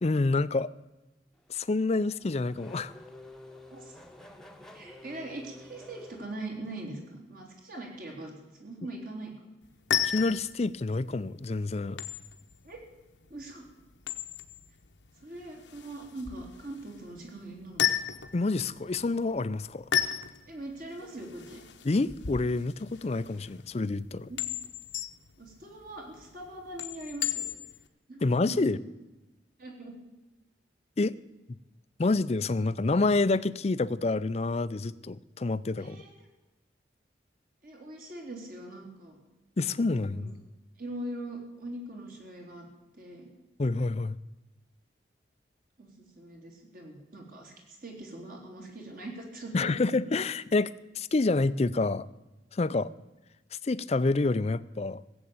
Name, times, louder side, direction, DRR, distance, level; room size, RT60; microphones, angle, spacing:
voice 1, 0.0-0.7 1.5-2.9 10.0-12.0 18.3-19.8 21.8-24.3 28.2-28.8 31.0-31.1 32.0-36.0 39.6-40.3 43.6-44.2 49.5-52.1 52.5-52.9 53.6-55.0, left 3 dB, 35° left, 16 dB, 0.5 m, -28 dB
Race car auto racing / Accelerating revving vroom, 1.4-6.9, left 1 dB, 5° left, 1.0 m, -51 dB
voice 2, 4.7-8.3 8.6-9.3 12.6-12.8 13.3-13.6 15.2-18.0 20.5-21.6 24.3-24.4 25.4-27.5 28.1-28.7 29.6-30.0 35.8-36.3 37.6-39.2 40.1-40.3 40.8-42.7 42.9-43.3 45.8-49.7, right 2 dB, 50° right, 1 dB, 3.6 m, -42 dB
sound 1, 9.6-27.9, left 10 dB, 85° left, 1.0 m, -35 dB
16.5 x 8.0 x 8.7 m, 1.0 s
head